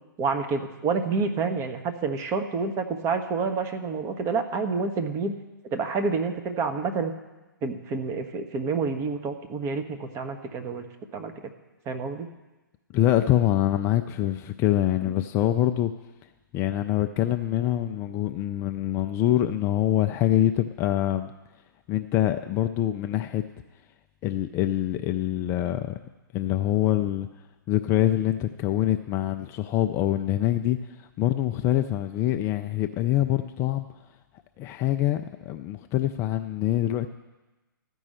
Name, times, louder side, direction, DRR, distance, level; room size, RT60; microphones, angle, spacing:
voice 1, 0.2-5.3 5.7-7.1 7.6-10.9 11.1-11.5 11.9-12.3, right 4 dB, 25° right, 7 dB, 1.0 m, -28 dB
voice 2, 12.9-15.9 16.5-21.3 21.9-23.4 24.2-25.9 26.3-27.3 27.7-33.9 34.6-37.1, left 12 dB, 20° left, 7 dB, 0.4 m, -25 dB
13.5 x 5.4 x 7.6 m, 1.1 s
hypercardioid pair, 130°, 12 cm